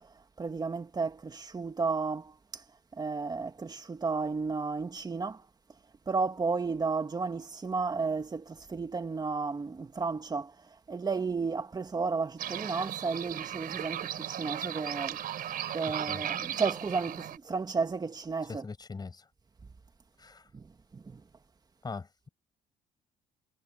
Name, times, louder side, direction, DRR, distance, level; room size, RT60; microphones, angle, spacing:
voice 1, 0.4-2.6 2.9-5.4 6.1-10.5 10.9-15.2 15.7-18.6 20.5-21.2, right 4 dB, 25° right, 2.0 m, -33 dB
sound 1, 12.4-17.4, right 10 dB, 60° right, 3.9 m, -36 dB
voice 2, 18.5-19.2 20.2-20.4 21.8-22.3, left 4 dB, 25° left, 5.5 m, -41 dB
cardioid pair, 110°, 17 cm